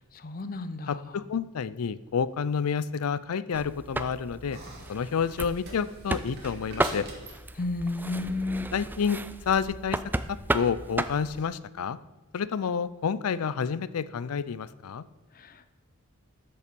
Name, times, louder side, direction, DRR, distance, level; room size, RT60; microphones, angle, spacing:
voice 1, 0.2-1.0 7.6-8.7 15.4-15.7, left 2 dB, 45° left, 11 dB, 0.6 m, -32 dB
voice 2, 0.9-4.6 4.9-7.1 8.7-10.0 10.3-12.0 12.3-15.0, left 6 dB, 85° left, 17 dB, 0.4 m, -29 dB
sound 1, 3.5-11.4, right 2 dB, 10° right, 0.3 m, -34 dB
sound 2, 4.5-8.8, right 2 dB, 50° right, 2.3 m, -46 dB
12.5 x 5.5 x 5.2 m, 1.1 s
head